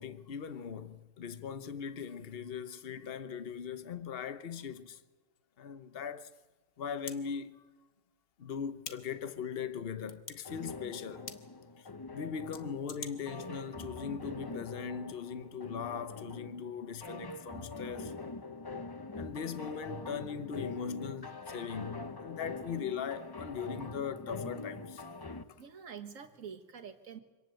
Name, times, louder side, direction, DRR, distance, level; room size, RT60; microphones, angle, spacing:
voice 1, 0.0-5.0 5.6-6.3 6.8-7.5 8.4-11.3 11.8-11.9 12.1-18.2 19.1-25.0, left 7 dB, 40° left, 1.0 m, -40 dB
sound 1, 5.3-5.4 7.0-7.2 8.8-9.0 10.1-10.4 11.3-11.4 12.5-13.1, left 6 dB, 65° left, 1.8 m, -43 dB
sound 2, 10.4-25.4, left 3 dB, 25° left, 0.4 m, -44 dB
voice 2, 25.6-27.2, right 7 dB, 55° right, 1.8 m, -46 dB
25.5 x 18.5 x 7.8 m
omnidirectional pair, 1.7 m